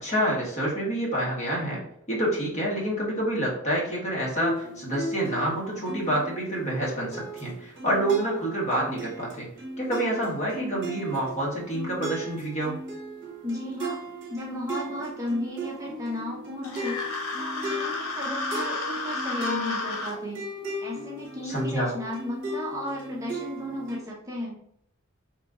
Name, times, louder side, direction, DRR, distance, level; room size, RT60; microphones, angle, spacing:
voice 1, 0.0-1.8 2.1-9.5 9.8-12.8 21.4-21.9, right 1 dB, 35° left, -4 dB, 1.1 m, -28 dB
sound 1, 4.3-24.0, right 1 dB, 60° right, 0.8 m, -36 dB
voice 2, 13.4-14.0 14.3-20.4 20.8-24.6, left 1 dB, 15° right, -3 dB, 0.6 m, -34 dB
sound 2, 16.6-20.1, left 2 dB, 90° left, 0.9 m, -32 dB
3.0 x 2.5 x 3.6 m, 0.70 s
head